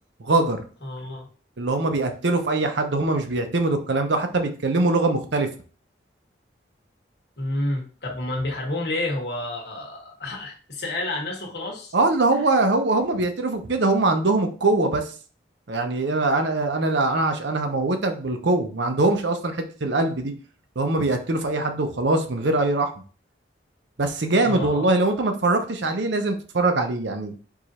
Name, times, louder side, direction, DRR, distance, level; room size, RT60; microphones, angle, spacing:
voice 1, 0.2-0.6 1.6-5.5 11.9-15.1 15.7-20.3 20.8-22.9 24.0-27.3, right 2 dB, 70° right, 6 dB, 0.7 m, -22 dB
voice 2, 0.8-1.3 7.4-11.9 24.4-24.8, left 1 dB, 60° left, -1 dB, 1.3 m, -29 dB
4.8 x 2.6 x 4.1 m, 0.38 s
head